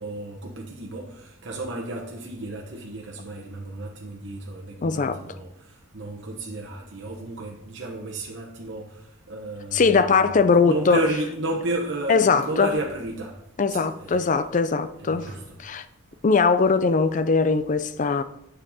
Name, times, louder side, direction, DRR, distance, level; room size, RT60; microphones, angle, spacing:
voice 1, 0.0-10.3 10.6-13.4 13.7-14.4 15.0-15.6, right 2 dB, 60° right, 1.1 m, -32 dB
voice 2, 4.8-5.2 9.7-11.0 12.1-12.8 13.6-15.3 15.6-15.8 16.2-18.2, left 4 dB, 40° left, 0.4 m, -20 dB
8.8 x 6.6 x 4.1 m
head